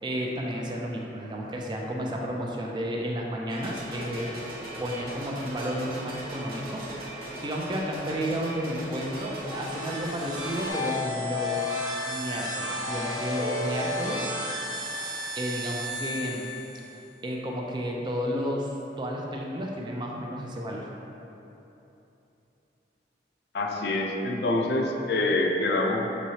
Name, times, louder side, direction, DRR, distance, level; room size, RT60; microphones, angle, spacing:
voice 1, 0.0-4.3 4.8-6.8 7.4-14.3 15.4-16.5 17.2-20.9, equal, 25° right, -1 dB, 0.4 m, -32 dB
sound 1, 3.5-10.7, right 1 dB, 55° right, 0.7 m, -39 dB
sound 2, 9.3-17.0, left 1 dB, 85° right, 1.0 m, -32 dB
voice 2, 23.5-26.3, left 2 dB, 65° left, 0 dB, 0.4 m, -26 dB
6.3 x 3.1 x 2.7 m, 3.0 s
head